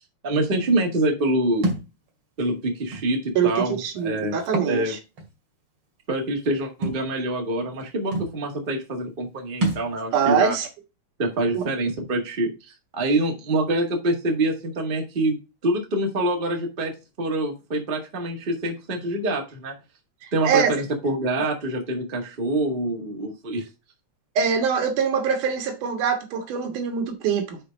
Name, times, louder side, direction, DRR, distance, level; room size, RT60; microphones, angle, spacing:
voice 1, 0.2-1.7 2.4-4.4 4.6-4.9 6.1-10.5 11.2-16.9 17.2-19.7 20.3-23.7, right 1 dB, 25° right, 1.4 m, -25 dB
Thump thud, 1.6-1.9 2.9-3.1 4.4-4.8 5.2-5.3 6.8-7.0 7.8-7.9 8.1-8.3 9.6-9.9, right 2 dB, 45° right, 2.8 m, -26 dB
voice 2, 3.4-5.0 9.8-9.9 10.1-10.7 11.5-11.6 20.2-20.7 21.4-21.5 24.4-27.6, right 7 dB, 80° right, 2.9 m, -24 dB
7.5 x 4.4 x 5.2 m
omnidirectional pair, 3.6 m